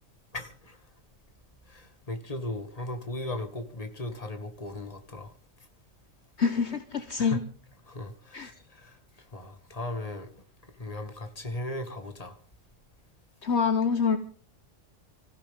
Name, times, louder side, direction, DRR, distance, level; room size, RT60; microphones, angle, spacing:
voice 1, 0.3-0.8 1.7-5.3 7.2-7.5 7.9-8.9 9.3-10.3 10.8-12.4, left 1 dB, 30° left, 2.1 m, -37 dB
voice 2, 6.4-7.4 8.3-8.5 13.4-14.2, left 5 dB, 60° left, 1.3 m, -26 dB
26.0 x 15.0 x 3.6 m
omnidirectional pair, 1.3 m